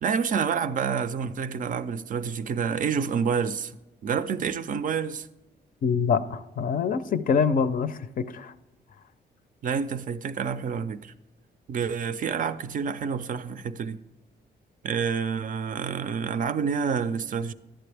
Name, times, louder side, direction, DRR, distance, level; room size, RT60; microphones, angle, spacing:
voice 1, 0.0-3.7 4.0-5.3 9.6-11.1 11.7-14.0 14.8-17.5, right 6 dB, 50° right, 0.4 m, -28 dB
voice 2, 5.8-8.5, left 6 dB, 55° left, 0.5 m, -25 dB
11.5 x 7.7 x 3.4 m
cardioid pair, 110°, 17 cm